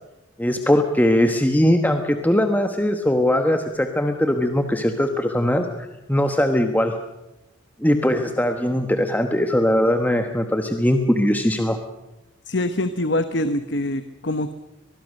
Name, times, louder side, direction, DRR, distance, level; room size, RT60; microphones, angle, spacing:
voice 1, 0.4-5.7 6.1-6.9 7.8-11.8, left 1 dB, 10° left, 6 dB, 1.1 m, -20 dB
voice 2, 12.5-14.5, left 1 dB, 60° left, 11 dB, 1.0 m, -24 dB
23.5 x 20.5 x 6.5 m, 0.95 s
head